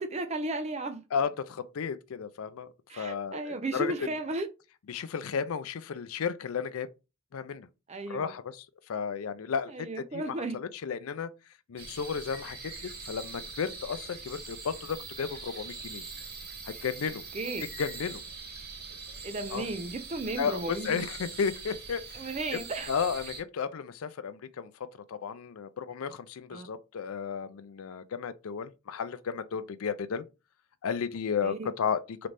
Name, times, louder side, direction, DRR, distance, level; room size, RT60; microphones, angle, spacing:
voice 1, 0.0-1.0 2.9-4.5 7.9-8.3 9.7-10.6 17.3-17.7 19.2-21.0 22.1-22.9 26.5-26.7 31.4-31.7, right 2 dB, 30° right, 0.5 m, -34 dB
voice 2, 1.1-2.7 3.0-3.9 4.9-6.9 7.3-7.7 8.1-9.9 10.1-10.2 10.5-11.3 11.7-12.6 13.0-16.0 16.8-17.2 17.8-18.2 19.5-19.6 20.4-22.2 22.9-24.7 25.1-30.2 30.8-32.3, left 6 dB, 75° left, 0.4 m, -33 dB
sound 1, 11.8-23.4, right 4 dB, 45° right, 1.3 m, -43 dB
3.9 x 3.2 x 3.3 m
head